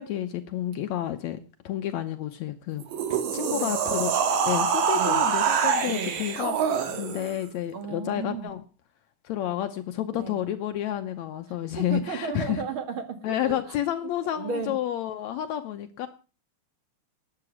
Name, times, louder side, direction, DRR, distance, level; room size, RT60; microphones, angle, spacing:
voice 1, 0.0-1.4 1.6-4.1 4.5-6.6 7.0-8.6 9.2-12.6 13.2-16.1, left 11 dB, 75° left, 8 dB, 2.0 m, -30 dB
sound 1, 2.8-7.4, right 7 dB, 75° right, 3.1 m, -25 dB
voice 2, 3.4-3.7 5.0-5.2 5.9-6.2 7.7-8.5 10.1-10.3 11.8-13.6 14.4-14.7, right 5 dB, 50° right, 8 dB, 2.1 m, -33 dB
13.0 x 9.6 x 6.2 m, 0.35 s
omnidirectional pair, 3.4 m